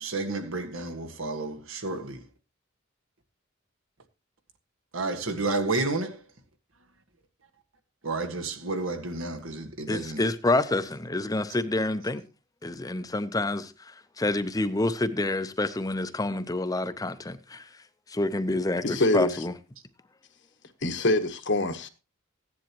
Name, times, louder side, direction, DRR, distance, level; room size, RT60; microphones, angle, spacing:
voice 1, 0.0-2.3 4.9-6.2 8.0-10.3, right 3 dB, 85° right, 1.5 m, -31 dB
voice 2, 9.9-12.2 12.6-13.7 14.2-17.6 18.1-19.5, left 2 dB, 20° left, 0.6 m, -28 dB
voice 3, 18.8-19.4 20.8-21.9, left 2 dB, 60° left, 1.2 m, -25 dB
15.5 x 10.5 x 3.0 m
head